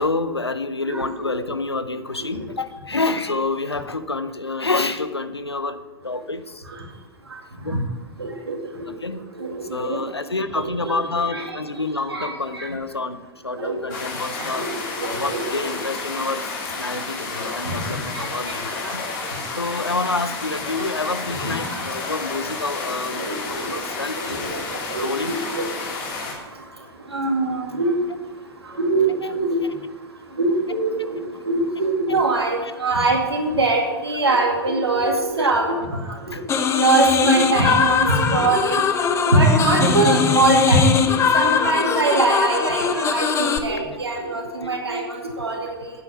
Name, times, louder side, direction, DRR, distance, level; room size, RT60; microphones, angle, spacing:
voice 1, 0.0-6.6 7.6-7.8 8.9-9.2 9.7-14.7 15.2-19.0 19.5-23.2 23.5-24.6 25.0-25.4 29.2-29.3 32.6-32.7 35.4-35.5 36.3-36.4, left 3 dB, 90° left, 12 dB, 0.6 m, -28 dB
voice 2, 0.9-1.3 7.7-7.8 8.2-8.5 9.4-10.0 10.6-10.9 11.3-11.4 12.1-12.7 13.5-13.7 14.6-14.7 15.0-15.4 17.7-17.8 18.1-18.2 21.4-21.5 23.1-23.4 23.7-23.8 24.2-24.5 24.9-25.6 27.1-27.9 28.8-29.6 30.4-31.2 31.5-35.7 36.8-38.7 39.2-40.9 41.3-43.3 43.6-45.7, right 2 dB, 80° right, 0 dB, 2.3 m, -22 dB
sound 1, 13.9-26.3, left 3 dB, 50° left, 3.3 m, -31 dB
sound 2, 36.5-43.6, left 6 dB, 20° left, 0.8 m, -21 dB
9.6 x 8.5 x 5.8 m, 1.3 s
figure-of-eight pair, 100°, 13 cm